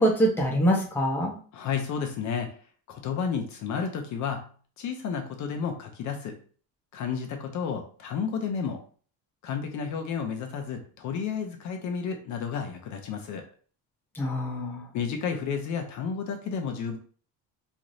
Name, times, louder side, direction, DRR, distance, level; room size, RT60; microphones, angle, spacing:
voice 1, 0.0-1.4 14.2-14.8, equal, 5° left, -1 dB, 0.6 m, -24 dB
voice 2, 1.5-2.5 2.9-4.4 4.8-6.4 6.9-8.8 9.4-13.5 14.9-17.0, left 6 dB, 45° left, 4 dB, 0.6 m, -31 dB
3.1 x 2.6 x 2.6 m, 0.43 s
cardioid pair, 140°, 39 cm